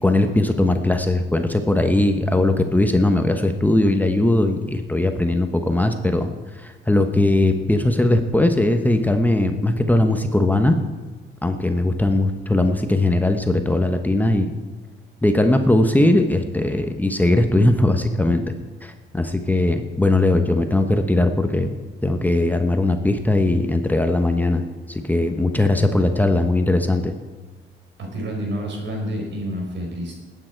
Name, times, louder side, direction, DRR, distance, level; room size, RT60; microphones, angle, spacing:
voice 1, 0.0-10.7 11.4-14.5 15.2-18.4 18.8-21.7 22.0-24.6 24.9-27.1, left 2 dB, 10° left, 6 dB, 1.0 m, -19 dB
voice 2, 28.0-30.2, equal, 65° right, 0 dB, 4.8 m, -28 dB
20.0 x 9.0 x 4.6 m, 1.4 s
cardioid pair, 90°, 20 cm